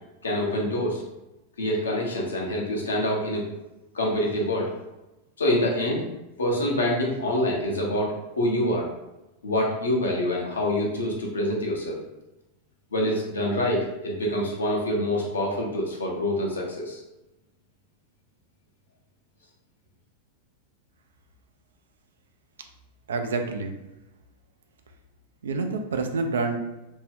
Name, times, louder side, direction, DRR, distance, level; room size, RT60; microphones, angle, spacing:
voice 1, 0.2-1.0 1.6-3.4 3.9-4.7 5.4-6.1 6.4-8.9 9.4-12.0 12.9-17.0, left 1 dB, 70° left, -1 dB, 0.7 m, -26 dB
voice 2, 23.1-23.7 25.4-26.6, right 3 dB, 65° right, 5 dB, 0.3 m, -27 dB
2.6 x 2.1 x 3.4 m, 0.98 s
figure-of-eight pair, 90°, 0 cm